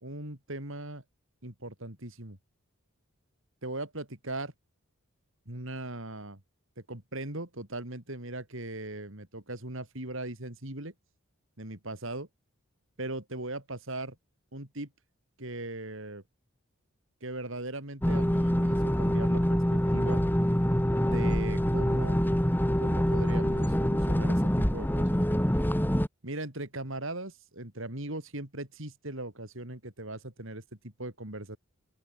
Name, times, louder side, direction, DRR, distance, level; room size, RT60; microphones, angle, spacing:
voice 1, 0.0-1.0 1.4-2.4 3.6-4.5 5.5-6.4 6.9-10.9 11.6-12.3 13.0-14.2 14.5-14.9 15.4-16.2 17.2-20.2 21.0-22.2 22.8-25.2 26.2-31.6, right 2 dB, 60° right, 3.9 m, -39 dB
sound 1, 18.0-26.1, equal, 10° left, 1.9 m, -25 dB
open air
head